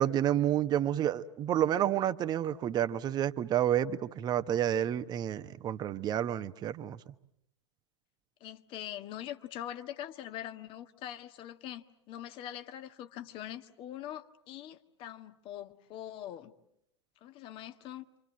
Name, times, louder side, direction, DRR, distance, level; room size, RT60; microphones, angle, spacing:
voice 1, 0.0-7.0, right 11 dB, 30° right, 1.1 m, -29 dB
voice 2, 8.4-16.5 17.2-18.0, left 11 dB, 35° left, 1.6 m, -43 dB
28.5 x 26.5 x 7.7 m
figure-of-eight pair, 95°, 15 cm